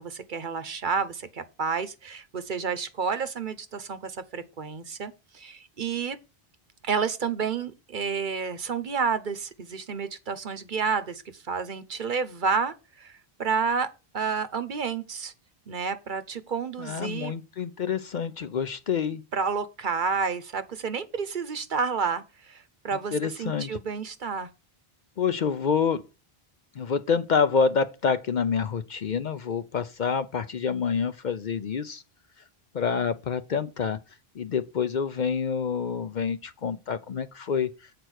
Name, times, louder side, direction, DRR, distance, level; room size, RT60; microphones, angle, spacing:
voice 1, 0.0-6.2 6.8-13.9 14.1-15.3 15.7-17.3 19.3-24.5, right 5 dB, 55° right, 0.9 m, -30 dB
voice 2, 16.8-19.2 23.1-23.8 25.2-26.0 26.8-32.0 32.7-34.0 34.4-37.7, left 6 dB, 55° left, 0.7 m, -27 dB
8.0 x 4.5 x 6.3 m
omnidirectional pair, 1.0 m